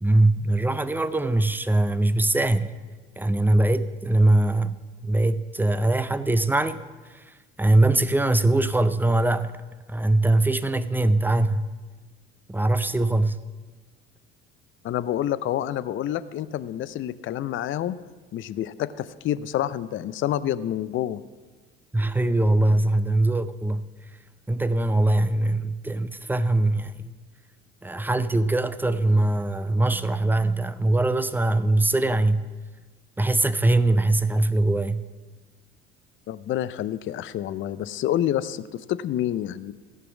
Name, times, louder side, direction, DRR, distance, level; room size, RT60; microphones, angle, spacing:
voice 1, 0.0-2.7 3.2-9.6 9.9-11.7 12.5-13.4 21.9-23.9 24.5-27.1 27.8-32.5 33.2-35.0, right 2 dB, 5° right, 0.5 m, -22 dB
voice 2, 14.8-18.0 18.3-21.2 36.3-39.7, left 11 dB, 40° left, 0.5 m, -28 dB
14.5 x 6.0 x 7.1 m
hypercardioid pair, 65°, 32 cm